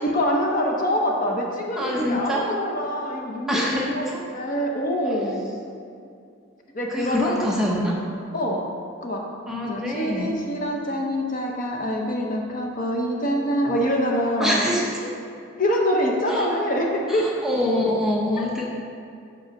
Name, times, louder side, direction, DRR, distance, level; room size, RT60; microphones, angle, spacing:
voice 1, 0.0-4.0 4.3-5.5 6.7-7.5 8.3-8.6 9.0-9.2 9.7-14.7 15.6-17.3 18.4-18.5, equal, 40° left, 0 dB, 0.8 m, -25 dB
voice 2, 1.8-2.5 3.5-4.2 6.9-8.0 9.5-10.4 14.4-15.1 16.3-16.5 17.1-18.6, left 1 dB, ahead, -4 dB, 0.6 m, -25 dB
6.2 x 5.3 x 5.2 m, 2.4 s
head